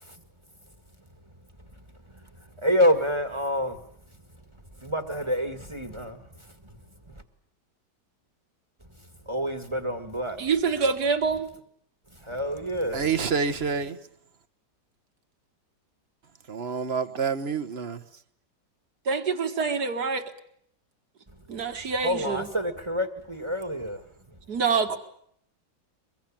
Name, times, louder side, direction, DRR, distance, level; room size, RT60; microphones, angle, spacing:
voice 1, 2.6-3.8 4.8-6.2 9.3-10.4 12.2-13.1 22.0-24.0, equal, 15° right, 1.8 m, -27 dB
voice 2, 10.4-11.5 19.1-20.3 21.5-22.5 24.5-25.0, right 5 dB, 65° right, 2.4 m, -26 dB
voice 3, 12.9-14.0 16.5-18.0, right 5 dB, 40° right, 1.2 m, -28 dB
23.5 x 22.5 x 8.8 m
omnidirectional pair, 1.9 m